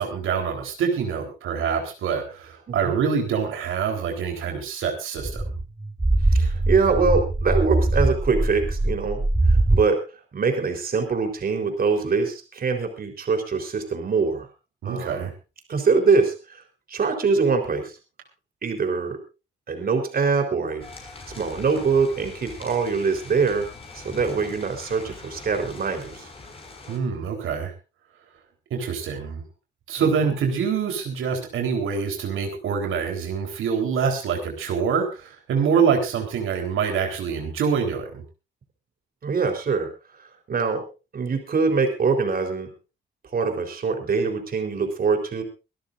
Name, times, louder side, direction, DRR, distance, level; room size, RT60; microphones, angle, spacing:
voice 1, 0.0-5.4 14.8-15.3 26.9-27.7 28.7-29.4 29.9-38.2, right 6 dB, 85° right, 3 dB, 3.9 m, -25 dB
voice 2, 2.7-3.0 6.3-10.0 10.3-14.5 14.8-15.3 15.7-16.6 16.9-18.0 18.6-19.2 19.7-20.8 21.4-23.7 23.9-26.3 30.0-30.1 39.2-40.8 41.1-42.7 43.3-45.4, right 4 dB, 45° right, 5 dB, 4.0 m, -24 dB
sound 1, 5.2-9.8, right 2 dB, 15° right, 1.9 m, -22 dB
sound 2, 20.8-27.0, left 3 dB, 30° left, 5.9 m, -42 dB
24.5 x 13.5 x 2.6 m, 0.31 s
cardioid pair, 115°, 21 cm